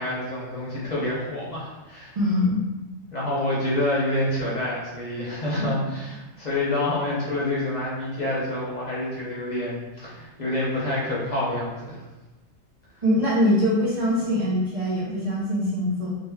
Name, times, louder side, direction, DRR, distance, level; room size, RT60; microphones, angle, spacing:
voice 1, 0.0-2.1 3.1-12.0, left 1 dB, 40° left, -7 dB, 0.8 m, -27 dB
voice 2, 2.2-2.6 13.0-16.1, left 1 dB, 65° right, -6 dB, 0.3 m, -23 dB
2.4 x 2.1 x 3.4 m, 1.1 s
omnidirectional pair, 1.3 m